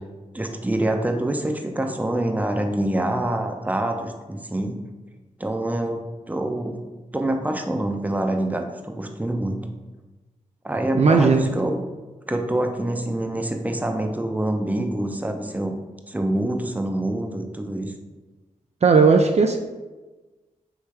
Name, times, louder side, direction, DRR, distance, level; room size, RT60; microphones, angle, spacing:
voice 1, 0.3-4.8 5.4-6.8 7.1-9.6 10.6-11.8 12.3-15.7 16.1-17.9, right 1 dB, 10° right, 4 dB, 0.6 m, -26 dB
voice 2, 10.9-11.5 18.8-19.6, right 5 dB, 50° right, 4 dB, 0.4 m, -16 dB
4.8 x 3.2 x 3.3 m, 1.2 s
cardioid pair, 45°, 14 cm